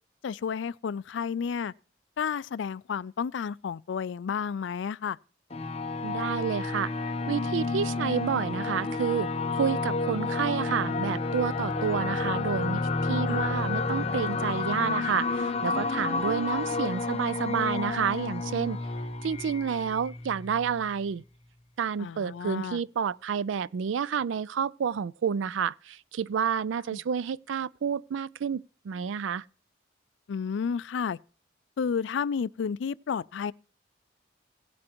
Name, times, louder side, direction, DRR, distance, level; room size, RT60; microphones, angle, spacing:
voice 1, 0.2-1.7 2.2-5.2 13.3-13.4 22.0-22.8 26.9-27.0 30.3-31.2 31.8-33.5, left 6 dB, 70° left, 0.3 m, -31 dB
sound 1, 5.5-20.8, left 3 dB, 30° left, 0.7 m, -30 dB
voice 2, 6.0-6.9 7.3-9.3 9.6-18.8 19.2-21.2 21.8-29.4, right 7 dB, 75° right, 0.4 m, -29 dB
17.0 x 7.7 x 2.9 m
head